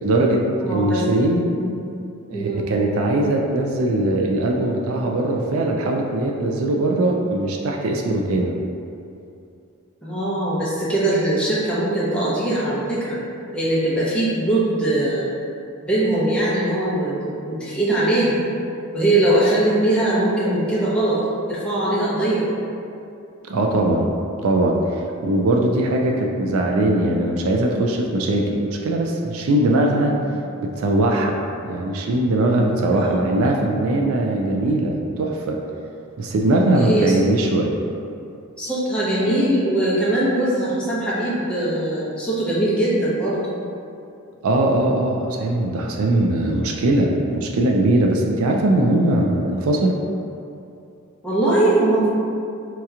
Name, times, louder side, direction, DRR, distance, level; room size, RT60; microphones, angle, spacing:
voice 1, 0.0-1.4 2.3-8.5 23.5-24.1 24.4-30.1 30.6-31.4 31.6-35.6 36.2-37.7 44.4-50.0, right 1 dB, 65° right, 0 dB, 0.3 m, -20 dB
voice 2, 0.6-1.0 1.5-1.9 2.3-2.7 10.0-13.2 13.5-15.3 15.8-18.4 18.9-21.2 21.5-22.5 30.1-30.4 32.9-33.3 36.7-37.1 38.6-43.4 51.2-52.1, right 1 dB, 5° left, -9 dB, 0.7 m, -21 dB
4.3 x 2.8 x 2.4 m, 2.6 s
head